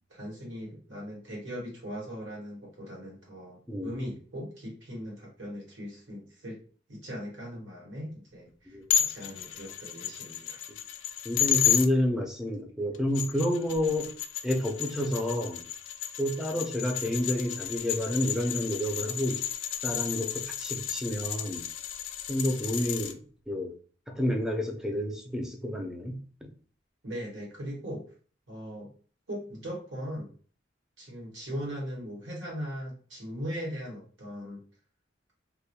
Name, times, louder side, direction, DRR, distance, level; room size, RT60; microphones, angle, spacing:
voice 1, 0.1-6.6 6.9-10.6 27.0-28.0 28.5-28.9 29.3-30.3 31.0-34.6, equal, 70° right, -3 dB, 1.1 m, -39 dB
voice 2, 3.7-4.1 8.7-8.8 11.2-14.1 14.4-15.6 16.2-19.4 19.8-21.7 22.3-23.2 23.5-23.8 24.1-26.5, left 1 dB, 5° right, 2 dB, 0.4 m, -30 dB
sound 1, 8.9-11.9 12.9-23.1, left 10 dB, 80° left, 0.3 m, -32 dB
2.2 x 2.1 x 2.8 m, 0.41 s
head